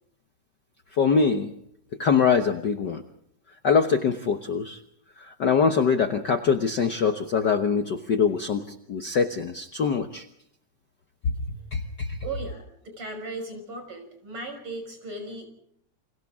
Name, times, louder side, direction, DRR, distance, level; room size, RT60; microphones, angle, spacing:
voice 1, 0.9-1.5 2.0-3.0 3.6-4.8 5.2-10.2 11.7-12.2, left 6 dB, 80° left, 7 dB, 0.9 m, -23 dB
voice 2, 12.2-15.5, right 2 dB, 40° right, 5 dB, 6.6 m, -37 dB
29.5 x 27.0 x 3.6 m, 0.70 s
omnidirectional pair, 3.6 m